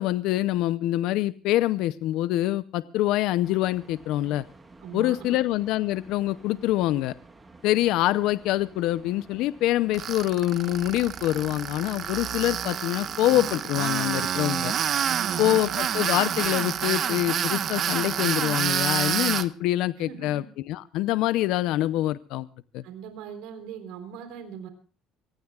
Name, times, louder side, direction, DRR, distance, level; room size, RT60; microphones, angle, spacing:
voice 1, 0.0-4.4 4.9-7.1 7.6-14.7 15.4-22.5 22.7-22.8, left 15 dB, 75° left, 14 dB, 0.6 m, -25 dB
sound 1, 3.4-16.5, right 2 dB, 15° right, 2.8 m, -51 dB
voice 2, 4.8-5.4 15.0-15.7 20.0-20.4 22.8-24.7, right 8 dB, 85° right, 8 dB, 3.8 m, -40 dB
Tools, 9.9-19.5, right 9 dB, 45° right, 1.1 m, -28 dB
24.0 x 19.0 x 2.4 m, 0.37 s
cardioid pair, 160°, 0 cm